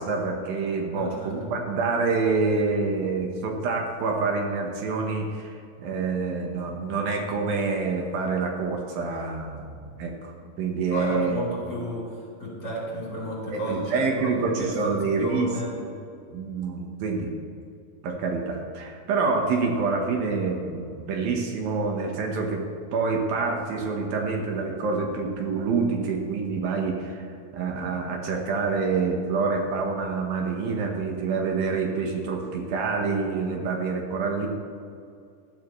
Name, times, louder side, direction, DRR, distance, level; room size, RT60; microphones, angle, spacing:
voice 1, 0.0-10.3 10.6-11.4 13.5-15.5 15.8-15.9 16.3-17.3 18.0-22.6 22.9-34.5, right 4 dB, 75° right, 1 dB, 3.0 m, -27 dB
voice 2, 0.9-1.5 10.9-15.7, right 1 dB, 25° left, -5 dB, 4.3 m, -32 dB
19.5 x 12.0 x 3.2 m, 2.4 s
omnidirectional pair, 4.2 m